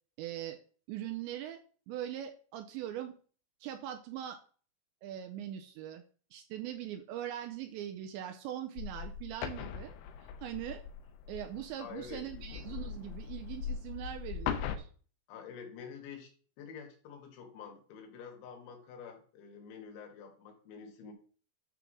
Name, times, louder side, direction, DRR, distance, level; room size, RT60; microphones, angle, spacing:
voice 1, 0.2-0.6 0.9-1.6 1.9-3.1 3.6-4.4 5.0-6.0 6.3-9.9 10.2-10.8 11.3-14.9, right 11 dB, 80° right, 6 dB, 2.6 m, -41 dB
sound 1, 8.8-14.8, left 8 dB, 90° left, 3.3 m, -40 dB
voice 2, 11.8-12.5 15.3-16.3 16.6-21.1, left 6 dB, 70° left, 2 dB, 4.0 m, -48 dB
11.0 x 3.7 x 6.1 m, 0.41 s
omnidirectional pair, 5.8 m